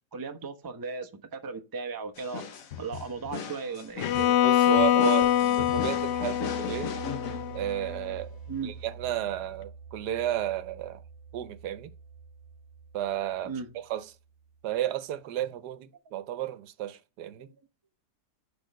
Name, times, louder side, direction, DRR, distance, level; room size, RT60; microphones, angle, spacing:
voice 1, 0.1-2.4 2.8-4.4 8.5-8.8 13.4-13.7 17.4-17.5, right 5 dB, 20° right, 0.5 m, -37 dB
sound 1, 2.2-8.0, left 7 dB, 60° left, 1.3 m, -38 dB
Bowed string instrument, 4.0-8.0, left 11 dB, 90° left, 1.2 m, -25 dB
voice 2, 4.4-7.0 7.5-8.4 8.6-11.0 11.3-11.9 12.9-14.1 14.6-17.5, right 12 dB, 80° right, 1.3 m, -33 dB
sound 2, 5.2-14.8, right 5 dB, 40° right, 0.9 m, -46 dB
6.3 x 5.3 x 5.2 m
omnidirectional pair, 1.8 m